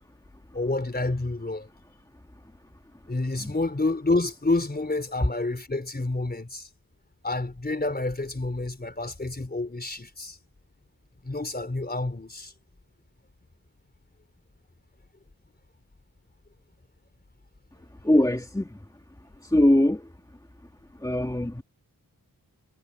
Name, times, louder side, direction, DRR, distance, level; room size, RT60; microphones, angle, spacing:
voice 1, 0.5-1.7 3.1-6.7 7.2-10.4 11.2-12.5, left 2 dB, 25° left, 4.3 m, -28 dB
voice 2, 18.0-18.7 19.5-20.0 21.0-21.6, left 1 dB, 10° left, 2.3 m, -21 dB
wide cardioid pair, 100°, 35 cm